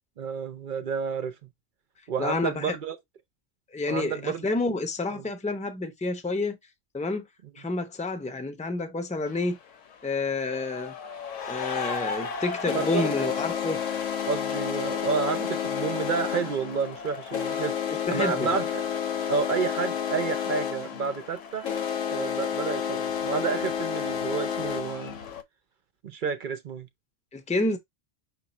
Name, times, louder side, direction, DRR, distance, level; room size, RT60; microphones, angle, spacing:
voice 1, 0.2-1.3 2.1-3.0 3.9-4.5 5.1-5.2 12.7-13.1 14.3-17.8 18.1-18.8 19.3-21.7 22.0-25.2 26.0-26.9, right 5 dB, 55° right, 0.6 m, -30 dB
voice 2, 2.2-2.7 3.7-6.6 6.9-7.3 7.6-9.6 10.0-10.9 11.5-13.8 17.9-18.5 27.3-27.8, left 3 dB, 10° left, 0.5 m, -29 dB
sound 1, 9.3-9.4 10.4-25.4, left 8 dB, 80° left, 1.1 m, -31 dB
5.7 x 2.2 x 4.0 m
omnidirectional pair, 1.3 m